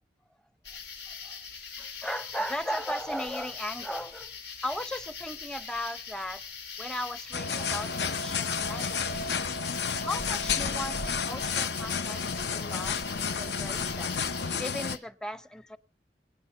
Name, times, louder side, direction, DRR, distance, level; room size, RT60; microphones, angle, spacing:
sound 1, 0.6-15.0, left 5 dB, 90° left, 4.4 m, -41 dB
voice 1, 1.1-1.4 1.8-4.3 4.6-6.4 6.8-9.2 10.0-14.2 14.6-15.8, left 1 dB, 5° left, 0.7 m, -37 dB
sound 2, 7.3-15.0, left 6 dB, 70° left, 0.7 m, -31 dB
24.5 x 9.3 x 5.7 m
head